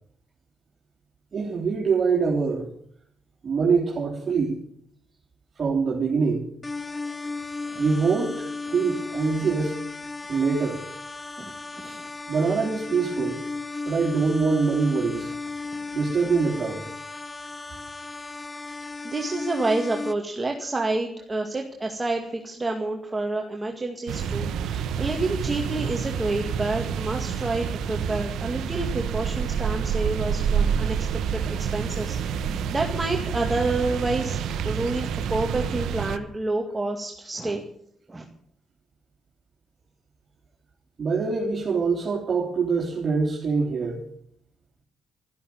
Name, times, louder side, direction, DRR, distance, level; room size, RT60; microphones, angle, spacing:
voice 1, 1.3-2.7 3.4-4.6 5.6-6.5 7.8-9.8 10.3-10.8 11.8-12.0 12.3-13.4 13.9-15.3 15.9-16.8 24.7-24.8 41.0-44.0, right 5 dB, 45° right, -4 dB, 3.4 m, -24 dB
sound 1, 6.6-20.1, left 3 dB, 20° left, 0.8 m, -35 dB
voice 2, 19.0-24.7 25.0-31.0 31.3-37.6 38.1-38.2, right 2 dB, 20° right, 2 dB, 2.1 m, -29 dB
Dam ambience, 24.1-36.2, right 7 dB, 80° right, 1.1 m, -28 dB
13.0 x 11.5 x 9.4 m, 0.66 s
cardioid pair, 90°, 0 cm